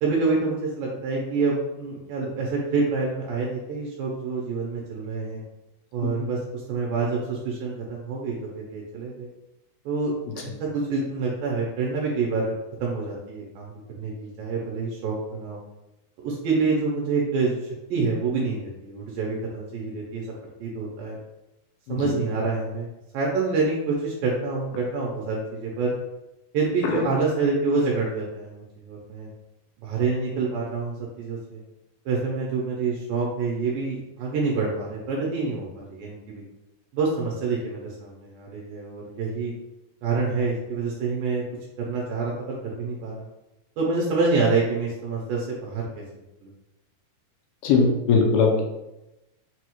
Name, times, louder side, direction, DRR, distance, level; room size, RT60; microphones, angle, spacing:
voice 1, 0.0-5.4 5.9-9.3 9.9-10.1 10.4-12.5 12.8-15.6 16.2-17.6 17.9-20.3 20.6-21.2 21.9-22.9 23.1-26.0 26.5-29.3 29.8-31.6 32.1-36.4 36.9-39.5 40.0-41.4 41.8-43.3 43.8-46.0 46.4-46.5, right 4 dB, 80° right, -3 dB, 2.2 m, -27 dB
voice 2, 47.6-48.6, left 4 dB, 85° left, 1 dB, 2.5 m, -20 dB
6.2 x 2.3 x 2.9 m, 0.96 s
omnidirectional pair, 4.3 m